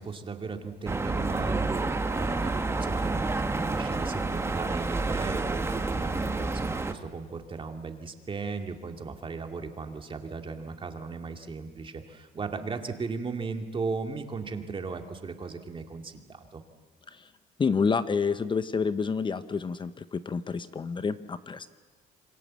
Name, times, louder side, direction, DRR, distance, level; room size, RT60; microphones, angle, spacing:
voice 1, 0.0-16.6, right 4 dB, 30° right, 5 dB, 2.3 m, -36 dB
sound 1, 0.9-6.9, right 3 dB, 15° right, 1.5 m, -29 dB
voice 2, 17.6-21.7, left 5 dB, 30° left, 13 dB, 0.9 m, -28 dB
27.0 x 24.0 x 7.6 m, 1.4 s
cardioid pair, 110°, 17 cm